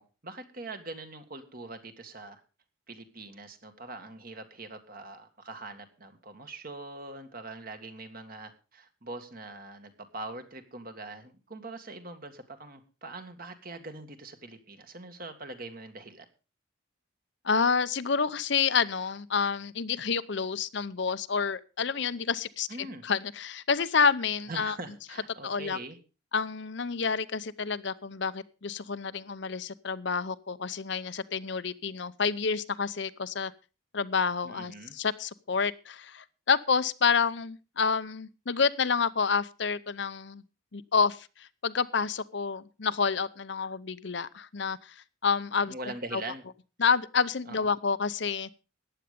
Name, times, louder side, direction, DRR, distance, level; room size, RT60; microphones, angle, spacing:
voice 1, 0.0-2.4 2.9-16.3 22.7-23.0 24.5-26.0 34.4-35.0 45.7-46.4 47.5-47.7, right 2 dB, 45° right, 7 dB, 1.9 m, -43 dB
voice 2, 17.4-24.7 25.4-25.8 26.3-33.5 33.9-40.4 40.7-45.7 46.1-46.2 46.8-48.5, left 5 dB, 55° left, 14 dB, 0.7 m, -29 dB
14.5 x 10.0 x 5.2 m, 0.33 s
head